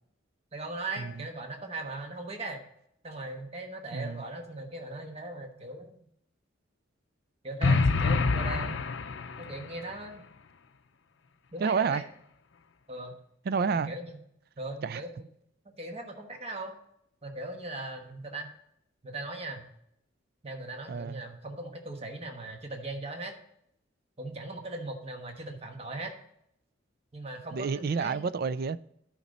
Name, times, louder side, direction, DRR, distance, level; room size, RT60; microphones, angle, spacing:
voice 1, 0.5-2.6 3.0-5.9 7.4-8.8 9.4-10.2 11.5-12.0 12.9-13.1 13.9-14.2 14.6-15.1 15.8-16.7 17.2-18.5 19.0-19.7 20.4-23.4 24.2-26.1 27.1-28.3, right 2 dB, 30° right, 1.2 m, -39 dB
voice 2, 3.9-4.2 11.6-12.0 13.4-13.9 14.8-15.0 20.9-21.2 27.5-28.8, right 5 dB, 50° right, 0.3 m, -29 dB
sound 1, 7.6-9.7, left 3 dB, 65° left, 0.5 m, -26 dB
11.0 x 5.2 x 4.1 m
head